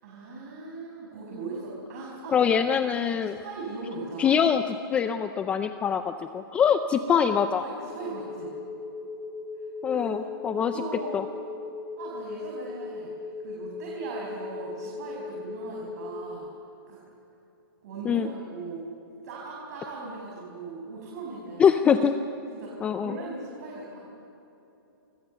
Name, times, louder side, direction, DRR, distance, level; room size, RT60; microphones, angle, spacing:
voice 1, 0.0-2.4 3.2-4.3 7.6-8.5 9.6-11.2 12.0-16.5 16.9-17.0 17.8-18.8 19.2-22.0 22.5-24.1, right 3 dB, 45° right, -3 dB, 6.7 m, -39 dB
voice 2, 2.3-3.4 4.2-4.6 4.9-7.6 9.8-10.7 11.1-11.2 18.1-18.3 21.6-22.1 22.8-23.2, left 7 dB, 10° left, 9 dB, 0.5 m, -23 dB
sound 1, 7.9-16.3, left 3 dB, 80° left, 5.5 m, -38 dB
29.0 x 25.0 x 6.9 m, 2.9 s
hypercardioid pair, 165°, 12 cm